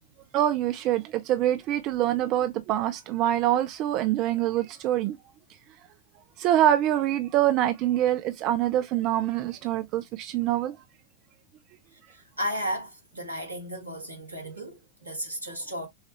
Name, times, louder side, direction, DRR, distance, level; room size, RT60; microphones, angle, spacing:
voice 1, 0.3-5.2 6.4-10.8, right 12 dB, 40° right, 0.4 m, -25 dB
voice 2, 12.1-15.9, equal, 85° right, 1.5 m, -34 dB
6.3 x 2.3 x 3.0 m
figure-of-eight pair, 90°, 0 cm